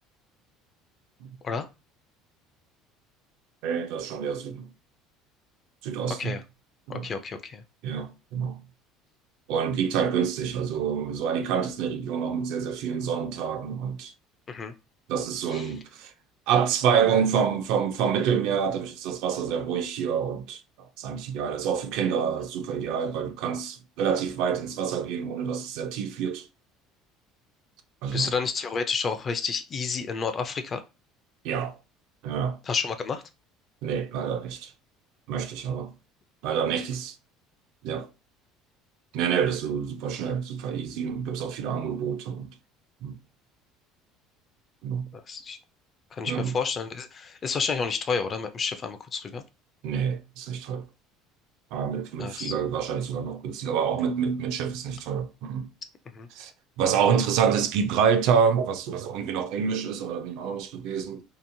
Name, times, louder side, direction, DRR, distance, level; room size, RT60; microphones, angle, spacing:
voice 1, 3.6-4.7 5.8-6.4 6.9-7.1 7.8-8.6 9.5-14.1 15.1-16.1 16.5-26.5 28.0-28.3 31.4-31.8 32.2-32.6 33.8-34.7 35.3-35.9 36.4-37.2 37.8-38.1 39.1-42.5 43.0-43.2 44.8-45.1 46.3-46.6 49.8-50.9 51.7-55.7 56.3-56.5 56.8-61.2, right 7 dB, 65° right, 0.4 m, -27 dB
voice 2, 6.1-6.4 6.9-7.6 14.5-14.7 15.5-15.7 28.1-30.8 32.7-33.2 45.1-45.6 46.1-49.4 52.2-52.5 56.1-56.3, left 5 dB, 25° left, 0.3 m, -30 dB
2.8 x 2.0 x 2.6 m
cardioid pair, 160°, 0 cm